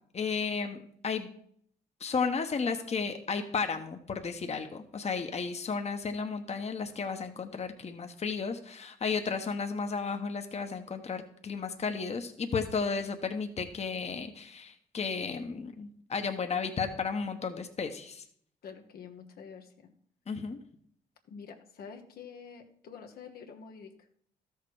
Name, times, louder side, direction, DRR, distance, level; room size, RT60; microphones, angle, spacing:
voice 1, 0.1-1.3 2.0-18.2 20.3-20.6, left 5 dB, 45° left, 6 dB, 1.2 m, -33 dB
voice 2, 16.5-16.8 18.6-19.7 21.3-24.1, left 6 dB, 75° left, 4 dB, 1.3 m, -47 dB
13.0 x 6.6 x 4.9 m, 0.64 s
cardioid pair, 65°, 16 cm